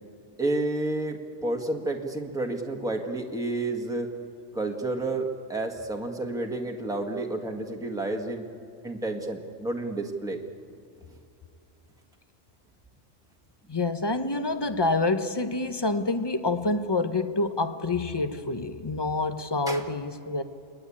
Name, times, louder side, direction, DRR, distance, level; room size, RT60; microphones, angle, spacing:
voice 1, 0.4-1.2 1.4-4.1 4.5-8.4 8.8-10.4 19.7-19.9, right 2 dB, 5° right, 1 dB, 1.7 m, -30 dB
voice 2, 13.7-20.4, left 2 dB, 20° left, 9 dB, 1.0 m, -27 dB
29.5 x 20.5 x 8.7 m, 2.6 s
omnidirectional pair, 1.4 m